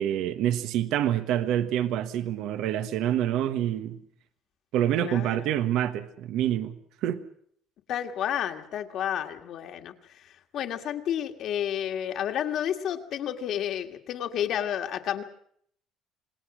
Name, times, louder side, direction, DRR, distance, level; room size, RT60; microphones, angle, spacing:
voice 1, 0.0-4.0 4.7-6.8 7.0-7.2, right 11 dB, 70° right, 1.3 m, -27 dB
voice 2, 5.0-5.5 7.9-15.2, left 10 dB, 55° left, 1.9 m, -31 dB
27.0 x 20.0 x 6.2 m
cardioid pair, 150°, 0 cm